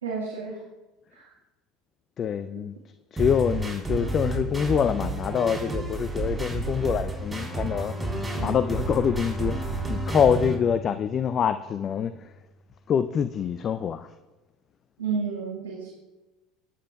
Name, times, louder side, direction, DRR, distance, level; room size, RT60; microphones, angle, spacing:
voice 1, 0.0-0.6 1.1-1.3 15.0-15.9, right 5 dB, 90° right, 1.7 m, -31 dB
voice 2, 2.2-2.8 3.1-8.0 8.4-12.3 12.9-14.1, left 8 dB, 40° left, 0.4 m, -25 dB
sound 1, 3.2-10.6, right 3 dB, 10° right, 3.9 m, -31 dB
Bowed string instrument, 7.1-12.4, right 1 dB, 10° left, 2.2 m, -37 dB
22.0 x 8.8 x 2.4 m
hypercardioid pair, 75°, 0 cm